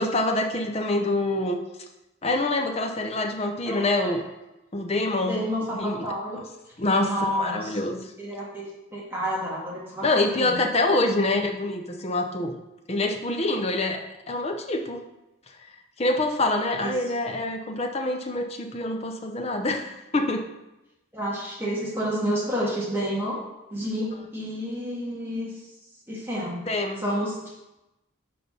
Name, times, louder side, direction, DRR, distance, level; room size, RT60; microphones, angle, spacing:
voice 1, 0.0-1.6 2.2-4.2 4.7-5.4 5.7-6.0 6.8-8.0 10.0-12.5 12.9-14.0 14.3-15.0 16.0-20.4 26.7-27.1, left 2 dB, 30° left, 4 dB, 0.6 m, -25 dB
voice 2, 3.7-4.1 5.2-6.4 7.0-7.8 8.2-8.6 8.9-10.6 16.8-16.9 21.1-23.4 23.7-25.5 26.1-26.6 27.0-27.6, equal, 10° right, -6 dB, 2.1 m, -30 dB
6.0 x 5.0 x 5.2 m, 0.96 s
head